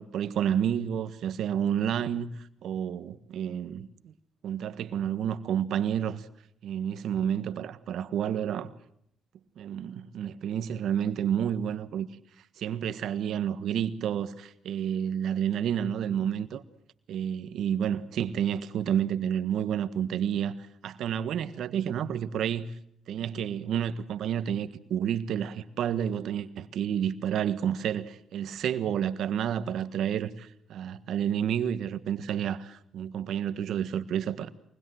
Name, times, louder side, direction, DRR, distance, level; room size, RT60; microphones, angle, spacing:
voice 1, 0.0-4.1 4.4-6.3 6.6-8.7 9.6-12.1 12.6-16.6 17.1-20.5 20.8-22.7 23.1-34.5, right 9 dB, 75° right, 1.5 m, -30 dB
24.0 x 20.0 x 7.9 m
cardioid pair, 90°, 0 cm